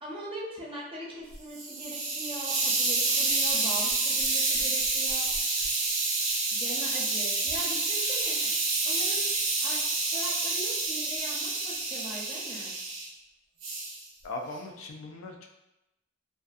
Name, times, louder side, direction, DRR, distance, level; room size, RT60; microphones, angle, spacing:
voice 1, 0.0-5.3 6.5-9.8 10.0-12.8, right 1 dB, 25° right, -5 dB, 0.6 m, -41 dB
Hiss, 1.3-13.1 13.6-14.0, right 3 dB, 75° right, 0.6 m, -28 dB
voice 2, 14.2-15.5, left 2 dB, 85° left, 2 dB, 0.4 m, -39 dB
2.5 x 2.4 x 2.3 m, 0.92 s
head